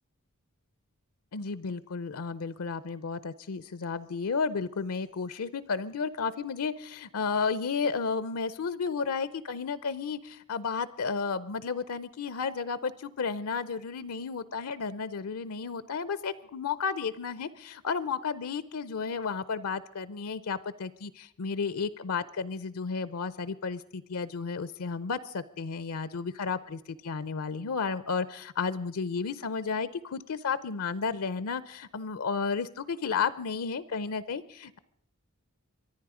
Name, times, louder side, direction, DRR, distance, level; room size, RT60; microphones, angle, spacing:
voice 1, 1.3-34.8, left 5 dB, 70° left, 16 dB, 0.6 m, -32 dB
24.5 x 10.0 x 4.9 m, 0.73 s
head